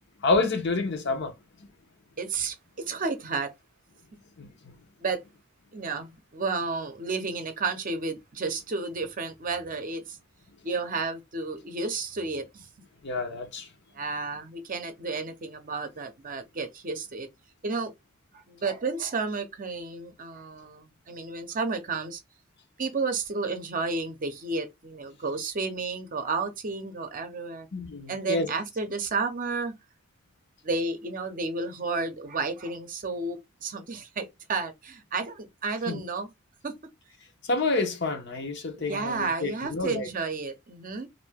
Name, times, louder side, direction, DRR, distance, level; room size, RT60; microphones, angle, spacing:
voice 1, 0.2-1.3 4.4-4.5 13.0-13.7 27.7-28.5 35.9-36.0 37.5-40.1, left 3 dB, 60° left, 0.8 m, -28 dB
voice 2, 2.2-3.5 5.0-5.2 5.7-10.2 10.6-12.7 13.9-17.3 17.6-17.9 18.3-22.2 22.8-27.7 28.1-29.7 30.6-36.3 36.6-36.7 38.8-41.1, right 4 dB, 45° right, 0.6 m, -32 dB
2.7 x 2.6 x 3.4 m
head